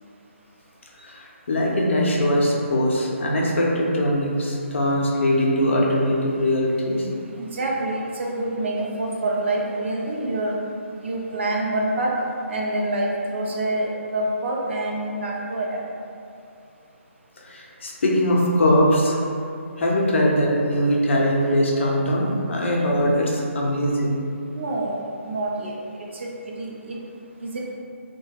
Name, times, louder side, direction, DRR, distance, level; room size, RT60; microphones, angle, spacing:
voice 1, 1.0-7.1 17.5-19.2 19.8-24.1, equal, 60° left, -2 dB, 0.6 m, -21 dB
voice 2, 7.4-10.6 11.0-12.2 12.5-15.8 24.5-25.0 25.2-27.0 27.4-27.7, right 2 dB, 55° right, -2 dB, 0.5 m, -27 dB
2.9 x 2.2 x 2.8 m, 2.5 s
hypercardioid pair, 160°, 7 cm